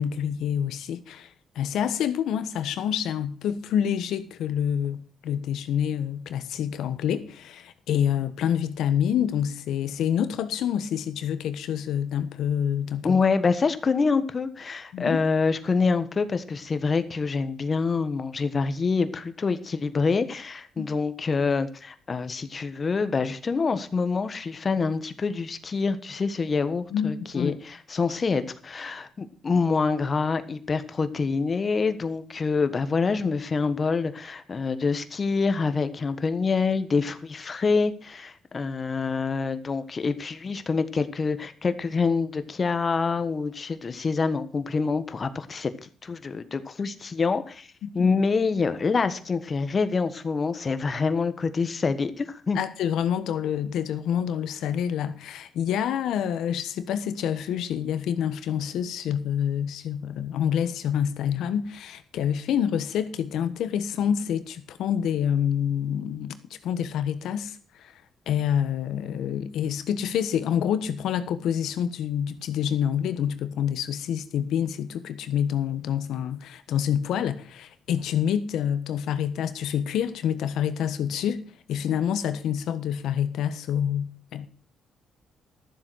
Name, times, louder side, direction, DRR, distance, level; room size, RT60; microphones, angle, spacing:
voice 1, 0.0-13.2 14.9-15.2 20.8-20.9 26.9-27.6 47.8-48.1 52.5-67.9 68.3-84.5, left 9 dB, 80° left, 1.3 m, -27 dB
voice 2, 13.0-47.7 47.9-52.6, left 4 dB, 35° left, 1.4 m, -26 dB
13.0 x 7.6 x 6.3 m
cardioid pair, 90°, 0 cm